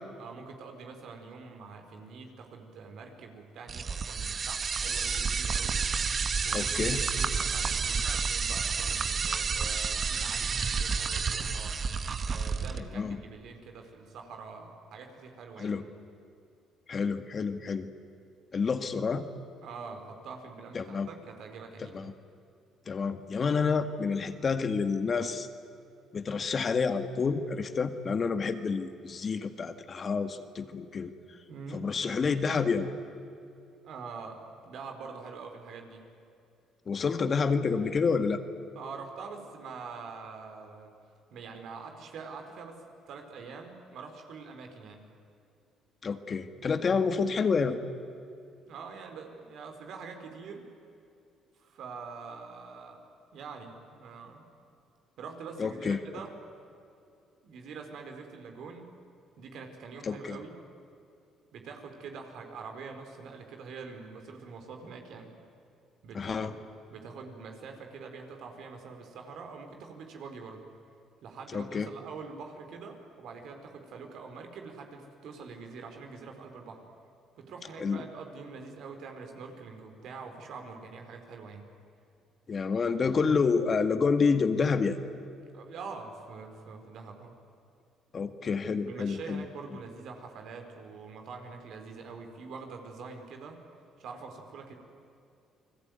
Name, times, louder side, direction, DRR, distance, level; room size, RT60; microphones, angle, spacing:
voice 1, 0.2-5.8 6.4-11.8 12.2-15.8 19.6-22.1 31.5-31.9 33.8-36.0 38.7-40.9 41.3-45.0 48.6-50.6 51.6-53.0 53.3-54.4 55.2-56.3 57.4-58.9 59.4-60.6 61.5-65.3 66.0-66.5 66.9-70.7 71.2-76.8 77.4-81.6 85.5-87.3 88.8-93.6 94.0-94.7, right 5 dB, 70° right, 4 dB, 4.5 m, -45 dB
sound 1, 3.7-12.8, right 5 dB, 45° right, 1.6 m, -30 dB
voice 2, 6.5-7.0 13.0-13.2 15.6-15.8 16.9-17.9 18.5-19.3 20.7-21.1 21.9-22.1 22.9-25.5 26.1-31.1 31.7-32.9 36.9-38.4 46.0-47.8 55.6-56.0 60.1-60.4 66.1-66.5 71.5-71.9 77.8-78.0 82.5-85.0 88.1-89.4, left 5 dB, 40° left, 9 dB, 1.9 m, -28 dB
29.5 x 20.5 x 9.4 m, 2.6 s
supercardioid pair, 75°, 0 cm